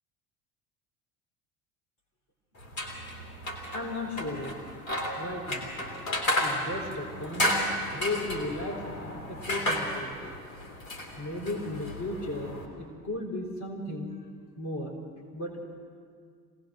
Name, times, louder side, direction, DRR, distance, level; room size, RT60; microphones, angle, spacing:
sound 1, 2.6-12.7, left 1 dB, 65° left, 3.2 m, -33 dB
voice 1, 3.7-4.6 5.2-5.7 6.4-7.6 7.9-10.5 11.2-14.1 14.6-15.0 15.3-15.8, left 2 dB, 40° left, -2 dB, 4.3 m, -35 dB
25.5 x 18.5 x 6.4 m, 2.1 s
figure-of-eight pair, 65°, 43 cm